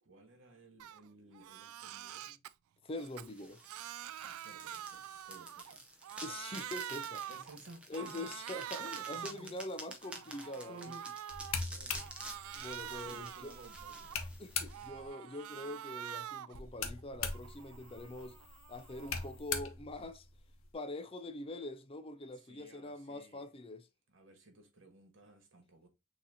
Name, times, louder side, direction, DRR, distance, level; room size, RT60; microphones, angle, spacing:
voice 1, 0.0-2.4 4.2-5.8 7.3-8.5 8.8-9.6 10.1-10.4 10.7-11.1 11.4-12.3 12.9-14.1 22.3-23.5 24.1-25.9, right 2 dB, 60° right, 1.4 m, -56 dB
Crying sobbing, 0.8-1.0 1.3-2.5 3.0-5.8 6.0-7.6 7.9-9.5 9.9-11.6 12.0-14.3 14.7-16.6 17.0-19.4, right 11 dB, 85° right, 0.3 m, -46 dB
voice 2, 2.8-3.6 6.2-7.3 7.9-10.9 12.5-13.5 14.4-18.4 18.7-20.3 20.7-23.9, left 2 dB, 25° left, 0.4 m, -44 dB
sound 1, 3.0-14.9, right 1 dB, 5° right, 0.7 m, -50 dB
sound 2, 11.3-15.1 16.5-20.7, left 5 dB, 70° left, 0.9 m, -42 dB
6.4 x 2.9 x 2.7 m
head